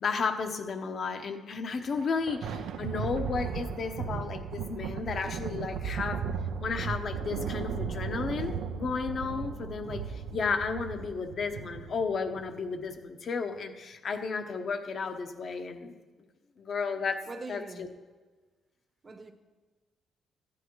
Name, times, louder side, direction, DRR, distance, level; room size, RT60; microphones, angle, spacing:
voice 1, 0.0-6.2 6.6-15.9 16.6-17.2 17.5-17.9, left 5 dB, 50° left, 7 dB, 0.9 m, -33 dB
Thunder, 1.8-12.6, right 6 dB, 80° right, 0.5 m, -36 dB
voice 2, 17.3-17.9 19.0-19.3, right 3 dB, 35° right, 6 dB, 1.0 m, -42 dB
14.5 x 9.8 x 3.1 m, 1.4 s
cardioid pair, 90°, 0 cm